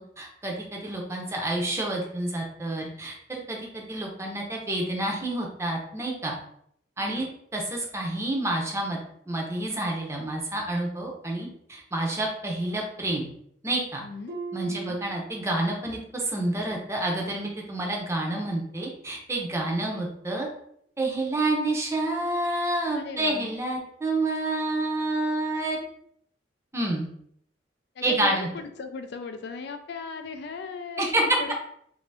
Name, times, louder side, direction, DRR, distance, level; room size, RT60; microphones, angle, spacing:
voice 1, 0.0-6.3 7.0-7.3 7.5-9.0 9.3-13.2 13.6-14.0 14.5-20.5 21.0-25.8 26.7-27.1 28.0-28.5 31.0-31.4, right 1 dB, 15° right, 0 dB, 0.7 m, -28 dB
voice 2, 7.0-7.3 14.0-14.4 14.7-15.0 19.8-20.0 22.9-23.5 28.0-31.6, left 5 dB, 65° left, 7 dB, 0.4 m, -38 dB
Harp, 14.3-16.0 16.4-16.8 17.4-17.5, right 5 dB, 60° right, 0.8 m, -40 dB
2.6 x 2.6 x 3.3 m, 0.68 s
head